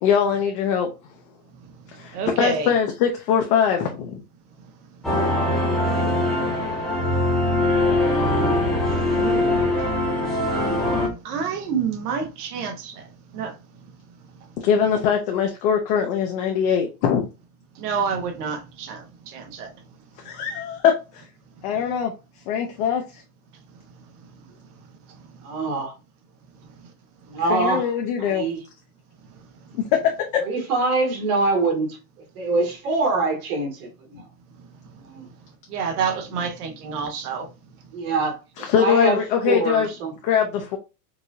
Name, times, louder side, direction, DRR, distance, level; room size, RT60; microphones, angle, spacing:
voice 1, 0.0-0.9 1.9-4.2 14.6-17.3 20.2-21.2 21.6-22.1 22.5-23.2 27.5-28.5 29.9-30.4 38.6-39.9 40.2-40.8, left 8 dB, 35° left, 0.5 m, -22 dB
voice 2, 1.5-2.8 4.6-5.2 5.9-6.9 7.2-7.6 7.9-9.8 10.5-13.9 14.4-15.1 17.7-19.7 20.2-20.6 21.6-22.0 22.8-22.9 23.5-24.5 24.8-25.8 26.6-26.9 27.2-27.7 29.3-30.1 32.7-32.8 34.6-35.3 35.7-37.5, right 6 dB, 85° right, 1.2 m, -32 dB
sound 1, 5.0-11.1, left 1 dB, ahead, 0.7 m, -22 dB
voice 3, 25.4-25.9 27.3-27.9 28.2-28.6 30.4-32.0 32.4-34.3 35.0-35.3 37.9-40.1, right 3 dB, 65° right, 2.0 m, -24 dB
4.6 x 2.6 x 2.6 m
supercardioid pair, 165°, 45 cm